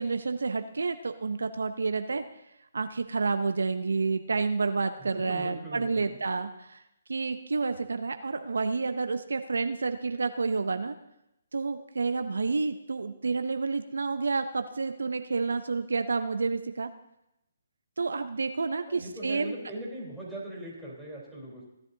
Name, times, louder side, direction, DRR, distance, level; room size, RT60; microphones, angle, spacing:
voice 1, 0.0-2.2 2.7-6.8 7.1-10.9 11.5-16.9 18.0-19.6, right 4 dB, 80° right, 9 dB, 0.6 m, -29 dB
voice 2, 5.0-6.2 18.9-21.6, right 1 dB, 5° right, -6 dB, 3.7 m, -40 dB
16.5 x 10.5 x 2.8 m, 0.85 s
hypercardioid pair, 145°, 0 cm